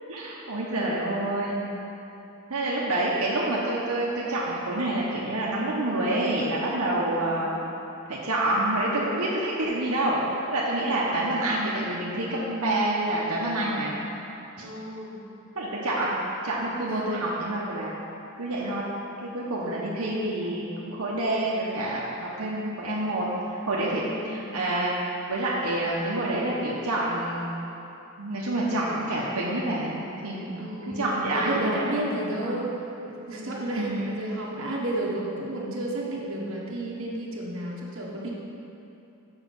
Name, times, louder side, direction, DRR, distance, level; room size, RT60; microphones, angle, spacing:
voice 1, 0.1-1.6 2.5-7.6 8.1-14.0 14.6-14.7 15.6-16.1 16.4-17.9 18.4-18.8 19.2-23.3 23.7-24.9 25.3-27.4 28.2-30.7 31.0-32.1 32.4-32.5 33.8-34.2, right 1 dB, 85° right, -5 dB, 1.0 m, -27 dB
voice 2, 11.0-11.4 14.6-15.2 16.9-17.1 19.6-19.9 24.1-24.5 30.6-32.7 33.1-38.3, right 1 dB, 65° right, -4 dB, 1.3 m, -32 dB
7.2 x 5.4 x 5.4 m, 2.9 s
head